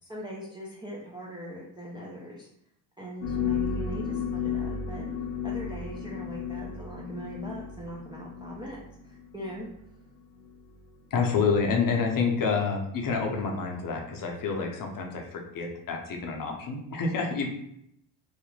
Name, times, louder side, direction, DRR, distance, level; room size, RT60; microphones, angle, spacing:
voice 1, 0.0-2.5 3.0-5.1 5.4-9.7, equal, 10° right, -4 dB, 0.4 m, -40 dB
sound 1, 3.2-9.6 10.3-10.5 11.3-11.5 12.1-12.2, left 6 dB, 80° left, 0.7 m, -33 dB
voice 2, 11.1-17.5, left 5 dB, 45° left, 1 dB, 0.6 m, -28 dB
2.4 x 2.0 x 3.1 m, 0.75 s
supercardioid pair, 65°, 47 cm